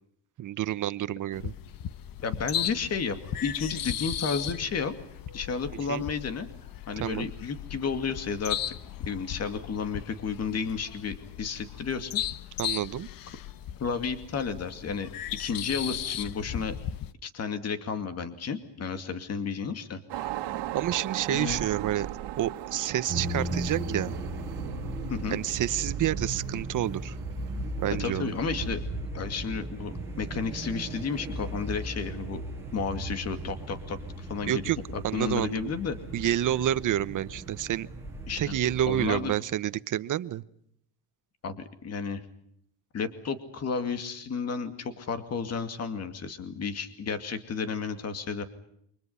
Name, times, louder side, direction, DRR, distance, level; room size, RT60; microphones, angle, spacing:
voice 1, 0.4-1.5 5.9-6.0 7.0-7.3 12.6-13.1 20.7-22.1 22.4-24.2 25.3-27.1 27.8-28.3 34.5-34.8 35.0-35.7 36.1-37.9 38.4-40.4, right 12 dB, 45° right, 15 dB, 1.0 m, -29 dB
sound 1, 1.3-17.1, left 10 dB, 55° left, 1.0 m, -37 dB
voice 2, 2.2-3.2 3.4-5.0 5.3-6.5 6.9-8.6 9.1-12.2 13.8-15.1 15.4-16.7 17.2-20.3 21.3-21.6 25.1-25.4 28.0-28.8 29.1-32.4 32.7-36.0 38.3-38.6 38.9-39.3 41.4-42.2 42.9-48.4, left 5 dB, 35° left, 9 dB, 2.4 m, -32 dB
sound 2, 20.1-28.8, right 13 dB, 80° right, 1.9 m, -39 dB
sound 3, 23.1-39.2, right 2 dB, 5° right, 5.8 m, -37 dB
29.0 x 25.0 x 5.7 m, 0.70 s
cardioid pair, 160°, 41 cm